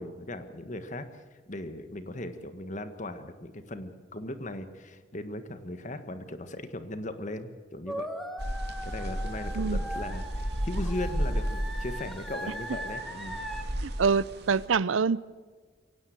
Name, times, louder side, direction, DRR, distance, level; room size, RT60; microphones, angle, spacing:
voice 1, 0.0-8.1 8.8-13.4 13.8-13.9, left 1 dB, 40° left, 10 dB, 1.6 m, -38 dB
sound 1, 7.9-13.6, equal, ahead, 1.7 m, -39 dB
sound 2, 8.4-14.7, equal, 55° right, 2.7 m, -33 dB
voice 2, 13.8-15.2, right 5 dB, 80° right, 20 dB, 0.6 m, -25 dB
23.5 x 17.5 x 7.9 m, 1.5 s
head